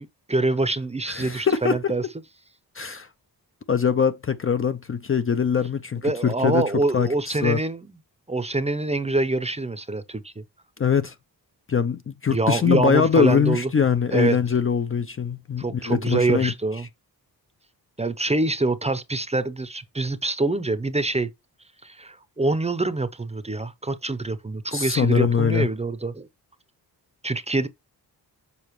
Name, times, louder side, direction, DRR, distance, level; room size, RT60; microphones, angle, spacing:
voice 1, 0.3-2.0 6.0-7.9 8.3-10.4 12.3-13.7 14.1-14.4 15.6-16.9 18.0-21.3 21.8-26.3 27.2-27.7, right 2 dB, 15° right, 0.7 m, -25 dB
voice 2, 1.1-1.8 2.8-3.1 3.7-6.7 6.9-7.1 7.4-7.6 10.8-11.1 11.7-16.5 24.7-25.7, left 6 dB, 35° left, 0.5 m, -22 dB
6.9 x 5.1 x 3.1 m
wide cardioid pair, 110°, 40 cm